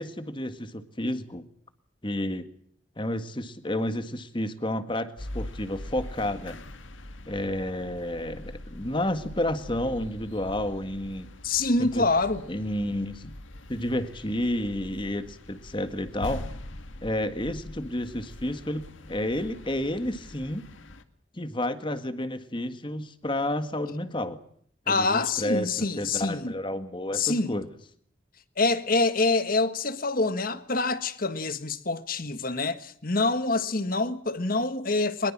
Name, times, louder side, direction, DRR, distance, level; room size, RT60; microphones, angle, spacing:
voice 1, 0.0-1.4 2.0-2.4 3.0-6.6 7.3-11.3 11.8-12.1 12.5-13.3 13.7-16.5 17.0-20.7 21.4-24.4 24.9-25.7 26.0-27.7, left 1 dB, 25° left, 1.7 m, -31 dB
sound 1, 5.2-21.0, left 1 dB, 75° left, 2.0 m, -43 dB
voice 2, 11.4-12.4 24.9-26.6 27.1-27.6 28.6-35.3, left 3 dB, 45° left, 1.5 m, -26 dB
23.0 x 21.5 x 7.4 m
head